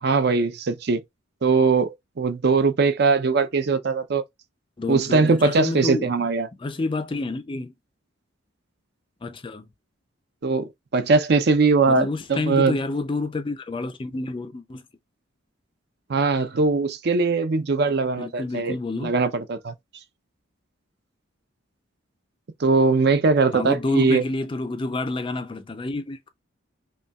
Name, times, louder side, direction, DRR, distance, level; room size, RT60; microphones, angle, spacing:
voice 1, 0.0-1.0 1.4-4.2 4.9-6.5 10.4-12.8 16.1-19.7 22.6-24.2, right 4 dB, 50° right, 0.5 m, -21 dB
voice 2, 4.8-6.1 6.6-7.7 9.2-9.7 11.9-14.8 18.2-19.2 23.5-26.3, left 2 dB, 25° left, 0.4 m, -29 dB
5.3 x 2.3 x 2.2 m
head